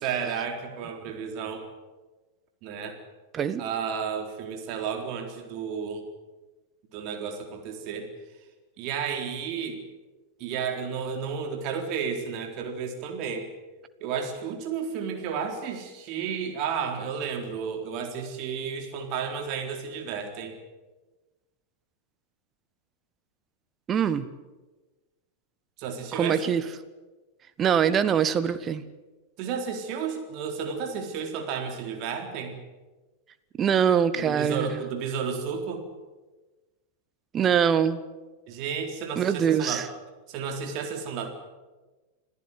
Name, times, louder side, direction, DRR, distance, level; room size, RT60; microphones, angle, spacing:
voice 1, 0.0-1.6 2.6-3.0 3.6-6.1 6.9-8.1 8.8-9.8 10.4-13.5 14.0-20.6 25.8-26.5 29.4-32.6 34.1-35.8 38.5-39.9 40.3-41.3, right 6 dB, 40° right, 4 dB, 4.0 m, -32 dB
voice 2, 23.9-24.3 26.1-26.6 27.6-28.8 33.6-34.8 37.3-38.0 39.2-39.9, right 8 dB, 25° right, 13 dB, 1.4 m, -23 dB
26.5 x 15.0 x 9.5 m, 1.2 s
figure-of-eight pair, 90°, 0 cm